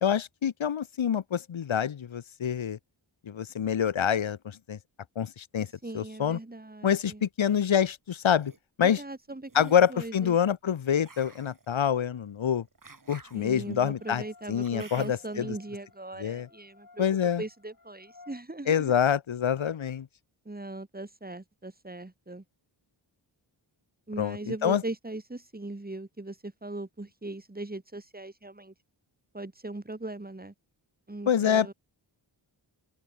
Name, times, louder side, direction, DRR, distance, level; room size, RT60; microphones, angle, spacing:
voice 1, 0.0-2.8 3.3-4.8 5.2-5.7 5.9-6.4 6.8-8.5 8.8-9.0 9.5-12.6 13.1-15.5 16.2-16.5 17.0-17.4 18.7-20.1 24.2-24.4 24.6-24.8 31.3-31.7, left 8 dB, 85° left, 1.2 m, -26 dB
voice 2, 5.8-7.3 8.8-10.4 13.3-17.1 17.4-18.9 20.5-22.4 24.1-28.7 29.3-30.5 31.1-31.7, right 2 dB, 20° right, 3.5 m, -39 dB
sound 1, 8.1-8.6 9.5-10.0 11.0-15.4, right 3 dB, 45° right, 6.8 m, -53 dB
sound 2, 13.9-18.4, left 4 dB, 45° left, 5.8 m, -56 dB
open air
wide cardioid pair, 85°, 46 cm